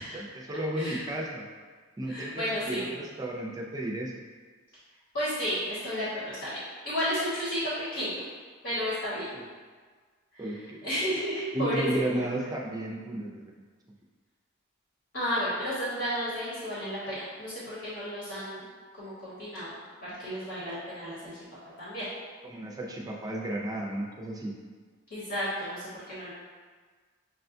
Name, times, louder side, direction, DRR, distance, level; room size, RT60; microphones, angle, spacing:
voice 1, 0.0-1.5 2.0-4.1 9.3-9.4 10.4-10.9 11.5-13.5 22.4-24.5, right 1 dB, 20° right, -2 dB, 0.4 m, -33 dB
voice 2, 2.1-2.9 5.1-8.2 8.6-9.2 10.3-10.4 10.8-12.3 15.1-18.7 18.9-19.7 20.2-21.3 21.8-22.1 25.1-26.3, equal, 60° left, -10 dB, 1.2 m, -32 dB
6.1 x 2.2 x 2.6 m, 1.5 s
head